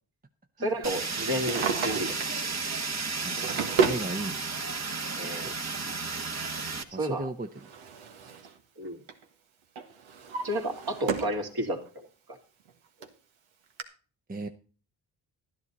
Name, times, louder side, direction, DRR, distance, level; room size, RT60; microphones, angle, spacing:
voice 1, 0.6-2.4 5.2-5.5 7.0-7.3 8.8-9.0 10.4-11.8, right 1 dB, 50° right, 2 dB, 2.8 m, -31 dB
Fire, 0.8-6.8, right 4 dB, 35° right, 1.5 m, -33 dB
Drawer open or close, 1.3-2.4 3.1-4.1 5.2-5.3 7.0-8.6 8.9-9.2 9.8-11.4 11.9-12.0 12.7-12.8 13.0-13.1 13.8-13.9, right 6 dB, 80° right, 1.6 m, -31 dB
voice 2, 3.8-4.6 5.4-5.5 6.9-7.5 14.3-14.5, right 2 dB, 20° right, 6 dB, 0.9 m, -35 dB
12.0 x 10.5 x 4.1 m, 0.38 s
cardioid pair, 60°, 47 cm